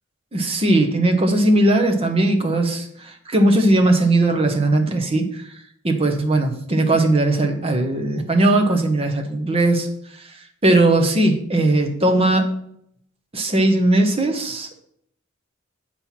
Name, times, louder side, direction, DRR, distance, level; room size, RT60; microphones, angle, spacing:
voice 1, 0.3-5.4 5.8-9.9 10.6-12.5 13.3-14.8, right 2 dB, 30° right, 3 dB, 1.0 m, -18 dB
7.7 x 4.3 x 5.9 m, 0.70 s
head